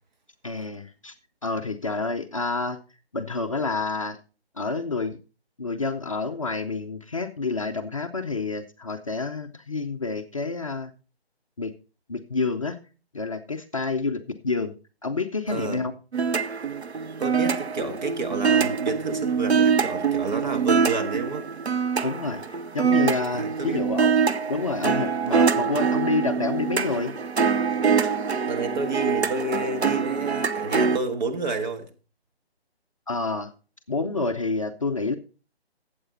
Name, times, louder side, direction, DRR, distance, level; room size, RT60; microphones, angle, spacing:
voice 1, 0.4-1.1 1.4-2.8 3.1-4.2 4.6-5.2 5.6-10.9 11.6-11.7 12.1-12.8 13.1-14.7 15.0-15.9 22.0-22.4 22.7-24.1 24.5-27.1 33.1-33.5 33.9-35.2, left 3 dB, 30° left, 0.6 m, -28 dB
voice 2, 15.5-15.9 17.2-21.5 23.3-23.8 28.4-31.9, right 3 dB, 45° right, 1.5 m, -30 dB
sound 1, 16.1-31.0, right 6 dB, 80° right, 0.9 m, -24 dB
12.0 x 8.0 x 4.1 m
figure-of-eight pair, 150°, 32 cm